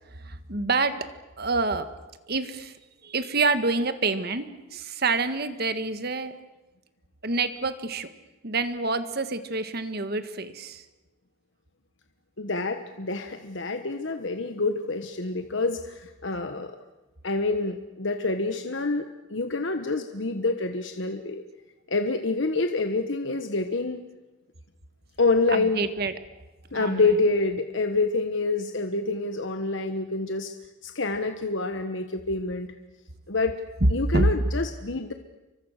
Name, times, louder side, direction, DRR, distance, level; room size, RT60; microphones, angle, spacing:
voice 1, 0.1-1.1 1.4-1.9 2.3-2.8 3.0-4.4 4.7-6.3 7.2-8.1 8.4-10.8 25.5-26.1 26.7-27.0 34.1-34.3, right 3 dB, 50° right, 10 dB, 1.7 m, -27 dB
voice 2, 12.4-16.8 17.2-21.4 21.9-24.0 25.2-25.9 26.7-30.5 30.8-32.7 33.3-33.6 33.9-35.1, left 3 dB, 60° left, 7 dB, 1.3 m, -27 dB
30.0 x 24.0 x 6.6 m, 1.1 s
head